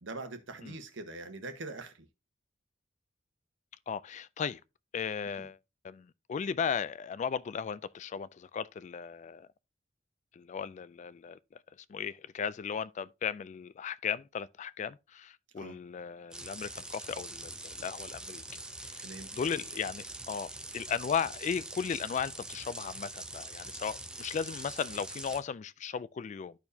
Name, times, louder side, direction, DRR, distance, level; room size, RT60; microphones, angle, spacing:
voice 1, 0.0-2.1 5.4-5.5 15.6-15.8 19.0-19.3, right 2 dB, 80° right, 1.2 m, -43 dB
voice 2, 3.9-4.6 4.9-5.6 5.8-9.5 10.4-11.4 11.9-18.4 18.9-26.5, left 7 dB, 40° left, 0.3 m, -36 dB
sound 1, 16.3-25.4, right 2 dB, 5° right, 0.6 m, -44 dB
12.5 x 4.5 x 2.7 m
head